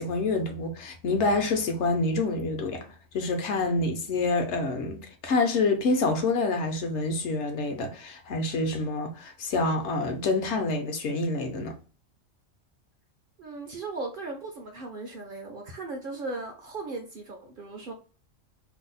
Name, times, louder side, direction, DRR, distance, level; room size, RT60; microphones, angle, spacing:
voice 1, 0.0-2.9 3.1-11.7, left 3 dB, 70° left, 0.9 m, -27 dB
voice 2, 13.4-17.9, right 3 dB, 55° right, 0.6 m, -37 dB
2.7 x 2.0 x 3.8 m
omnidirectional pair, 1.3 m